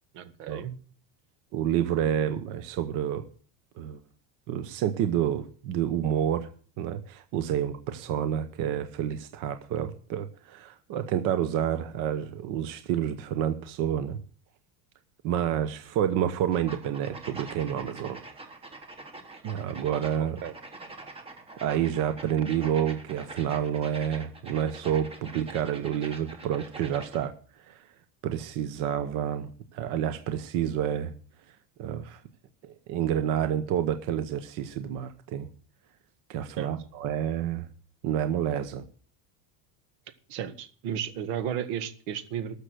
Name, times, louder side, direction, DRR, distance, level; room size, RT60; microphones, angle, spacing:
voice 1, 0.1-0.7 20.2-20.5 36.6-36.7 40.3-42.6, right 9 dB, 70° right, 10 dB, 1.9 m, -34 dB
voice 2, 1.5-3.2 3.8-4.0 4.5-6.5 6.8-14.2 15.2-18.2 19.4-20.4 21.6-27.3 27.7-27.8 28.2-31.1 31.8-32.2 32.6-35.5 36.3-37.7 38.0-38.9, right 10 dB, 40° right, 9 dB, 0.9 m, -29 dB
sound 1, 16.5-27.3, right 2 dB, 10° right, 1.2 m, -44 dB
13.0 x 6.7 x 7.8 m, 0.44 s
cardioid pair, 180°, 47 cm